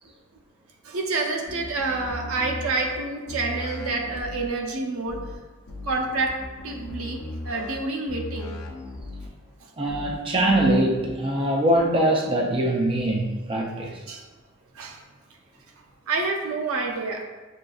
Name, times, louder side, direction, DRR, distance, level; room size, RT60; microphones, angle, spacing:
voice 1, 0.8-5.2 5.8-6.3 6.6-7.2 7.4-8.6 14.1-14.2 14.7-15.0 16.1-17.2, right 3 dB, 85° right, 1 dB, 0.6 m, -28 dB
sound 1, 1.5-3.0 3.3-4.5 5.1-5.4 5.7-7.8 8.1-9.3 9.9-10.2 10.5-11.1, left 2 dB, 80° left, 0.6 m, -37 dB
voice 2, 9.8-13.9, right 1 dB, 25° right, -1 dB, 0.4 m, -22 dB
6.3 x 2.5 x 2.3 m, 1.2 s
head